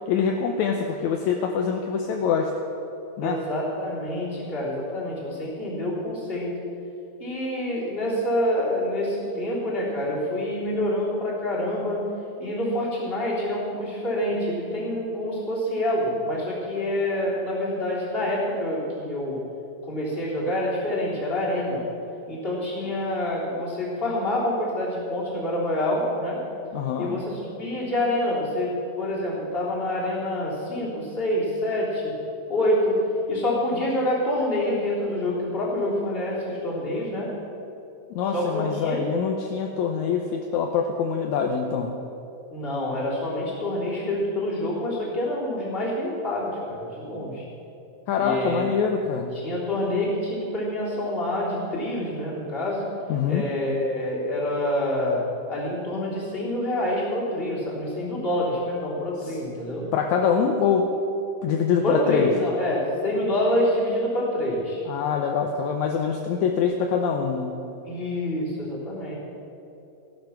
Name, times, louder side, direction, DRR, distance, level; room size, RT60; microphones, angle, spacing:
voice 1, 0.1-2.6 3.2-3.5 26.7-27.2 38.1-42.0 48.1-49.4 53.1-53.5 59.2-59.4 59.9-61.0 61.4-62.4 64.9-67.7, left 6 dB, 75° left, 3 dB, 2.0 m, -24 dB
voice 2, 3.2-6.6 7.2-12.1 12.4-19.4 19.9-21.8 22.3-26.4 27.0-32.2 32.5-33.0 33.3-37.3 38.3-39.0 42.5-47.4 48.2-48.7 49.3-52.9 53.3-59.9 61.8-64.8 67.9-69.1, left 1 dB, 15° left, -6 dB, 3.3 m, -27 dB
15.5 x 11.5 x 5.9 m, 2.9 s
omnidirectional pair, 3.7 m